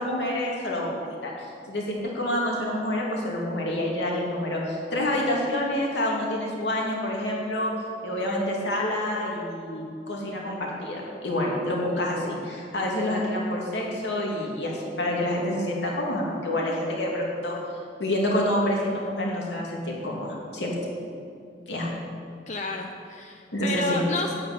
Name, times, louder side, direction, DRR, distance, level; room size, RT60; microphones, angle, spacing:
voice 1, 0.0-7.7 8.0-17.6 18.0-20.7 21.7-21.9 23.5-24.0, left 1 dB, 75° left, -3 dB, 2.8 m, -28 dB
voice 2, 22.5-24.3, left 3 dB, 40° left, 2 dB, 0.7 m, -31 dB
9.6 x 8.8 x 8.7 m, 2.4 s
head